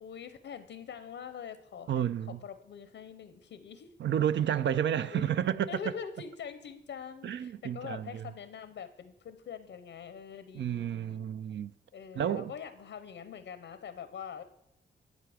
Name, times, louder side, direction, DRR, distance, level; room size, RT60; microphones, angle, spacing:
voice 1, 0.0-3.9 5.1-5.3 5.7-11.2 11.9-14.4, left 7 dB, 85° left, 0.7 m, -44 dB
voice 2, 1.9-2.4 4.0-5.8 7.2-8.3 10.5-11.7 12.1-12.5, right 10 dB, 70° right, 0.4 m, -31 dB
10.5 x 8.1 x 4.9 m
cardioid pair, 80°, 19 cm